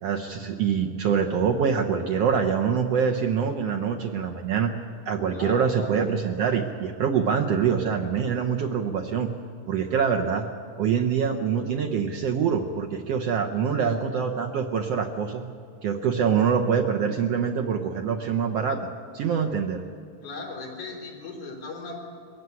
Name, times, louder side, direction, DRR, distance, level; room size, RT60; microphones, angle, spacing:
voice 1, 0.0-4.7 5.0-9.3 9.7-10.5 10.8-15.4 15.8-18.9 19.1-19.8, right 7 dB, 65° right, 3 dB, 1.7 m, -25 dB
voice 2, 5.3-5.9 13.8-14.0 20.2-22.0, left 3 dB, 65° left, 0 dB, 5.2 m, -38 dB
22.0 x 15.5 x 9.6 m, 2.3 s
omnidirectional pair, 3.7 m